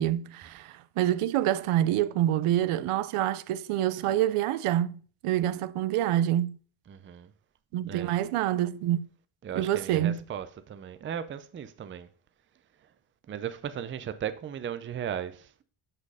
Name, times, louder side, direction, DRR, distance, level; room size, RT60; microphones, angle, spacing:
voice 1, 0.0-6.6 7.7-9.1 9.5-10.2, right 12 dB, 85° right, 0.7 m, -27 dB
voice 2, 6.9-7.3 7.9-8.1 9.4-12.1 13.3-15.6, right 9 dB, 25° right, 0.4 m, -36 dB
7.5 x 6.6 x 4.8 m
cardioid pair, 175°, 50 cm